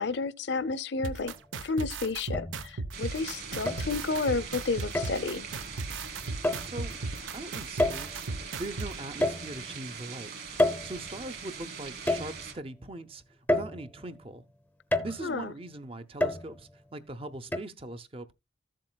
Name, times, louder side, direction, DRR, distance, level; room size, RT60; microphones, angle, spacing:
voice 1, 0.0-1.3 1.6-5.5 15.2-15.5, left 3 dB, 65° left, 0.6 m, -31 dB
sound 1, 1.0-8.9, right 3 dB, 90° right, 0.8 m, -35 dB
sound 2, 1.2-1.4 2.3-3.0 3.7-4.3 4.9-5.3 6.4-6.8 7.8-8.3 9.2-9.9 10.6-11.4 12.1-12.8 13.5-14.2 14.9-15.4 16.2-16.8 17.5-17.6, left 1 dB, 10° left, 0.6 m, -29 dB
sound 3, 2.9-12.5, right 5 dB, 55° right, 2.3 m, -42 dB
voice 2, 6.6-7.0 7.3-8.3 8.6-10.3 10.8-13.2 13.5-14.4 15.0-18.3, right 2 dB, 30° right, 0.6 m, -41 dB
14.0 x 7.6 x 2.2 m
head